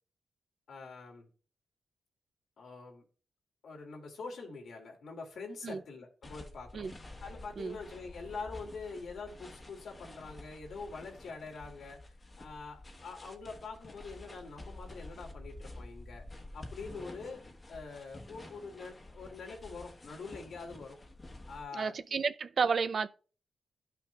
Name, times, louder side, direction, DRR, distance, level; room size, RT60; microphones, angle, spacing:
voice 1, 0.7-1.3 2.6-3.0 3.6-6.9 7.2-16.2 16.5-21.0 21.5-22.2, left 4 dB, 80° left, 2.2 m, -45 dB
sound 1, 6.2-21.6, left 1 dB, 30° left, 1.1 m, -50 dB
voice 2, 21.7-23.1, right 5 dB, 55° right, 0.5 m, -31 dB
12.5 x 5.8 x 2.3 m
wide cardioid pair, 115°, 0 cm